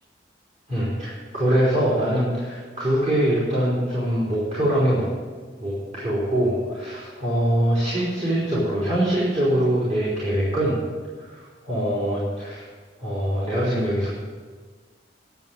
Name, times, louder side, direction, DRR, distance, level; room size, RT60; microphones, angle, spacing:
voice 1, 0.7-5.1 5.6-10.8 11.2-12.7 13.0-14.1, right 1 dB, 40° right, -8 dB, 4.0 m, -23 dB
11.0 x 7.6 x 9.1 m, 1.5 s
head